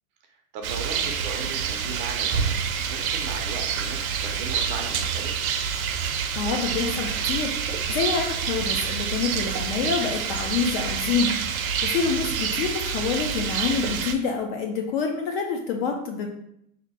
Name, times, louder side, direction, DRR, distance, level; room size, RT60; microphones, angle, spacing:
voice 1, 0.3-5.5 12.0-12.3, right 5 dB, 35° right, 3 dB, 0.5 m, -38 dB
Rain, 0.6-14.1, right 7 dB, 90° right, 0.6 m, -27 dB
voice 2, 6.3-16.3, left 5 dB, 45° left, 3 dB, 0.4 m, -27 dB
2.8 x 2.5 x 4.1 m, 0.75 s
hypercardioid pair, 135°, 41 cm